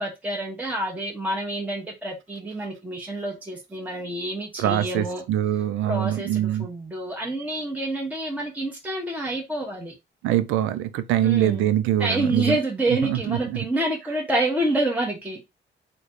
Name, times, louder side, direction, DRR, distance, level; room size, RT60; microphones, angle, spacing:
voice 1, 0.0-5.2 5.9-9.9 11.2-11.7 12.0-15.4, right 1 dB, 10° right, 1.0 m, -28 dB
voice 2, 4.6-6.7 10.2-12.6 12.9-13.6, right 12 dB, 90° right, 0.5 m, -23 dB
3.2 x 2.2 x 4.0 m
cardioid pair, 90°, 20 cm